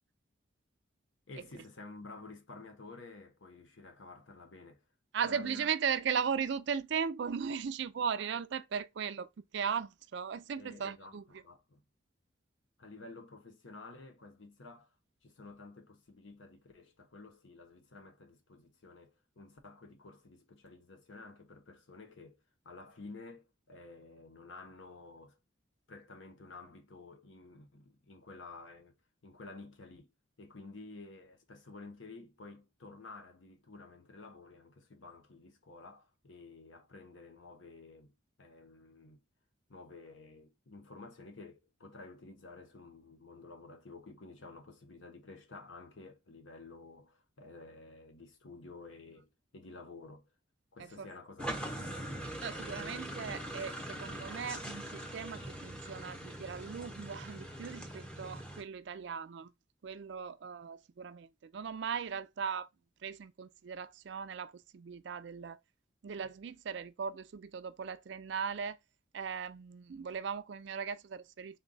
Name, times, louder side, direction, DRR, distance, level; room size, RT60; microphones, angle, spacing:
voice 1, 1.3-4.8 5.2-5.7 10.6-11.8 12.8-14.9 15.2-22.4 22.6-25.4 25.9-29.0 29.2-30.1 30.4-38.1 38.4-39.2 39.7-50.3 50.7-52.1, left 3 dB, 70° left, 0.8 m, -52 dB
voice 2, 5.1-11.4 50.8-51.1 52.4-59.5 59.8-62.7 63.0-65.6 66.0-68.8 69.1-71.6, right 6 dB, 60° right, 0.4 m, -38 dB
sound 1, 51.4-58.6, right 1 dB, 5° left, 0.6 m, -42 dB
3.6 x 2.2 x 3.9 m
head